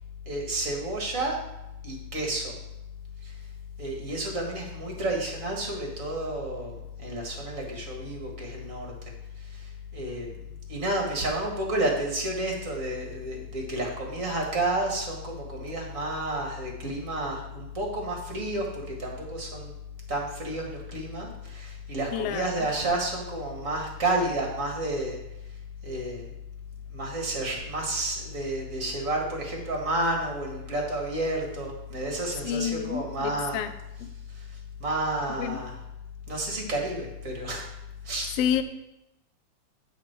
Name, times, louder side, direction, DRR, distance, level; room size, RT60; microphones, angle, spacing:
voice 1, 0.2-1.4 1.8-2.5 3.2-3.3 3.8-8.9 9.5-10.3 10.7-19.7 20.1-25.2 25.8-26.3 26.9-33.6 34.3-34.4 34.8-35.7 36.3-37.6 38.0-38.3, right 1 dB, 35° right, 0 dB, 1.6 m, -30 dB
voice 2, 22.1-22.7 32.4-33.7 34.0-34.1 35.4-35.6 38.4-38.6, left 9 dB, 85° left, 9 dB, 1.4 m, -29 dB
10.0 x 6.5 x 4.5 m, 0.90 s
omnidirectional pair, 3.6 m